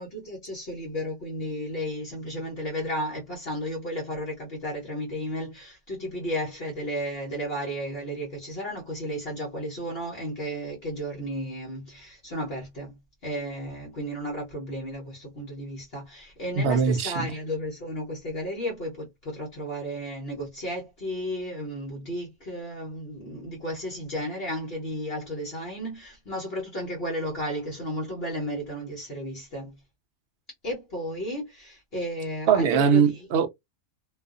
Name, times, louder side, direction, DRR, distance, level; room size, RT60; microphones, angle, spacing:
voice 1, 0.0-13.0 13.2-29.7 30.6-33.3, equal, 50° left, 1.1 m, -33 dB
voice 2, 16.6-17.3 32.5-33.5, right 6 dB, 65° right, 0.6 m, -21 dB
2.5 x 2.4 x 2.4 m
omnidirectional pair, 1.4 m